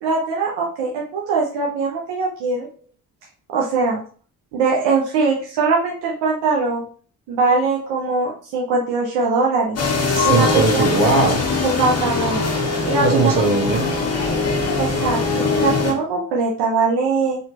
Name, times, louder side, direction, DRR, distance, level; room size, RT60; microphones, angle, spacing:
voice 1, 0.0-2.7 3.5-4.0 4.5-6.9 7.3-9.8 10.2-10.8 11.6-12.4 12.8-13.3 14.8-17.4, right 4 dB, 80° right, -2 dB, 0.8 m, -21 dB
sound 1, 9.8-15.9, left 4 dB, 40° left, 1.3 m, -21 dB
voice 2, 10.1-11.4 13.0-13.9, right 3 dB, 50° right, 2 dB, 1.4 m, -19 dB
4.1 x 3.0 x 2.9 m, 0.41 s
supercardioid pair, 50°, 41 cm